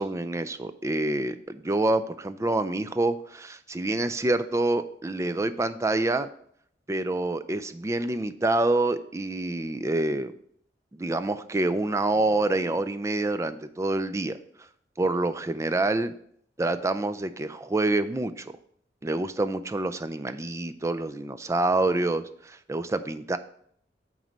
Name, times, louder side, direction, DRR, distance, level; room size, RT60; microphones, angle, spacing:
voice 1, 0.0-6.3 6.9-10.3 10.9-14.4 15.0-16.1 16.6-18.5 19.0-23.4, right 2 dB, 15° right, 11 dB, 0.3 m, -27 dB
9.0 x 3.2 x 6.0 m, 0.65 s
head